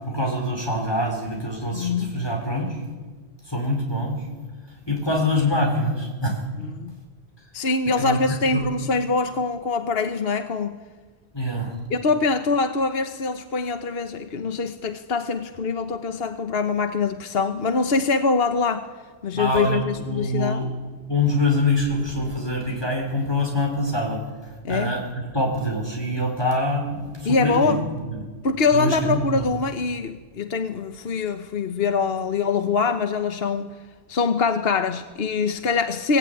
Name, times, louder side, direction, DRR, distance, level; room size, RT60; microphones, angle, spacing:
voice 1, 0.0-2.8 3.5-4.2 4.9-6.4 8.0-8.2 8.5-8.7 11.3-11.7 19.3-20.7 21.1-28.3 28.7-29.4, left 1 dB, 20° left, 0 dB, 4.7 m, -25 dB
voice 2, 1.7-2.2 6.6-7.0 7.5-10.8 11.9-18.9 19.2-20.6 24.6-24.9 27.2-27.8 28.4-33.7 34.1-36.2, left 4 dB, 60° left, 8 dB, 1.3 m, -24 dB
24.0 x 18.0 x 9.3 m, 1.4 s
omnidirectional pair, 1.1 m